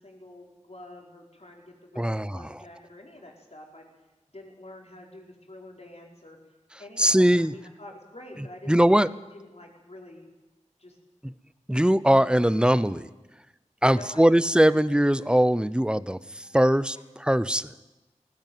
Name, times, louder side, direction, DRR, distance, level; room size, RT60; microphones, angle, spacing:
voice 1, 0.0-3.9 4.3-6.4 6.8-9.0 9.3-10.3 10.8-11.0 12.9-13.3 13.8-14.5, left 1 dB, 55° left, 0 dB, 4.5 m, -47 dB
voice 2, 2.0-2.4 7.0-7.5 8.7-9.1 11.2-11.3 11.7-13.1 13.8-17.7, equal, 5° right, 16 dB, 0.8 m, -21 dB
18.5 x 16.0 x 9.3 m, 1.0 s
wide cardioid pair, 50°, 13 cm